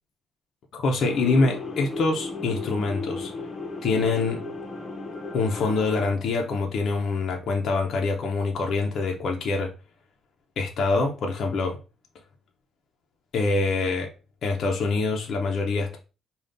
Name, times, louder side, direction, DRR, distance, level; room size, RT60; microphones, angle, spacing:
voice 1, 0.7-3.3 3.8-4.4 5.3-9.7 10.6-11.8 13.3-14.1 14.4-16.0, left 3 dB, 65° left, 0.7 m, -25 dB
sound 1, 1.0-6.1, left 3 dB, 40° left, 0.9 m, -35 dB
5.1 x 2.4 x 2.6 m
cardioid pair, 90°, 0 cm